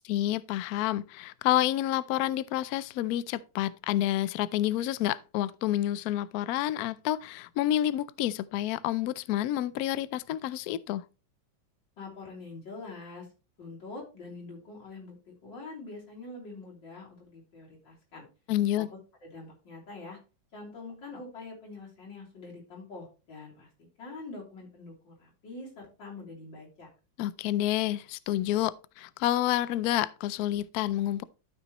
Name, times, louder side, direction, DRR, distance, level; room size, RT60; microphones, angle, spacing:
voice 1, 0.1-11.0 18.5-18.9 27.2-31.2, left 13 dB, 85° left, 0.8 m, -29 dB
voice 2, 12.0-13.3 13.6-15.2 15.4-18.2 18.8-18.9 19.2-20.2 20.5-23.7 24.0-26.9, left 3 dB, 65° left, 4.0 m, -44 dB
12.5 x 6.0 x 2.9 m
omnidirectional pair, 2.1 m